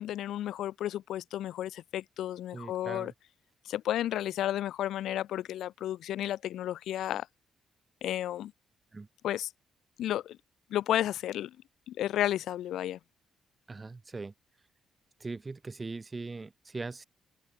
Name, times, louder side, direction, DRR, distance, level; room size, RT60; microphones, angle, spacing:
voice 1, 0.0-3.1 3.6-7.3 8.0-8.5 9.2-9.5 10.0-10.4 10.7-11.6 11.9-13.0, left 12 dB, 80° left, 1.4 m, -32 dB
voice 2, 2.5-3.1 8.9-9.1 13.7-14.3 15.2-17.0, right 3 dB, 25° right, 3.9 m, -40 dB
cardioid pair, 90°, 0 cm